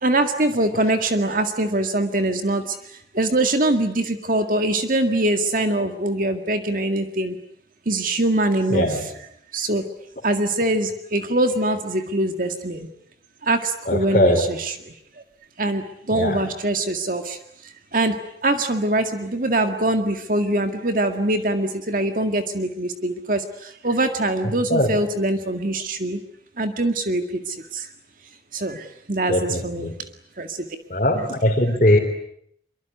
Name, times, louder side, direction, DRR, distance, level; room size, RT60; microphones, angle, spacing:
voice 1, 0.0-7.4 7.9-9.1 9.5-9.8 10.2-12.9 13.4-15.2 15.6-26.2 26.6-27.9 28.5-29.9 30.4-30.7, right 1 dB, 50° right, 6 dB, 2.0 m, -23 dB
voice 2, 8.7-9.0 13.9-14.4 16.1-16.4 24.7-24.9 29.3-29.9 30.9-32.0, left 1 dB, 40° left, -1 dB, 3.6 m, -20 dB
25.5 x 24.0 x 9.4 m, 0.70 s
head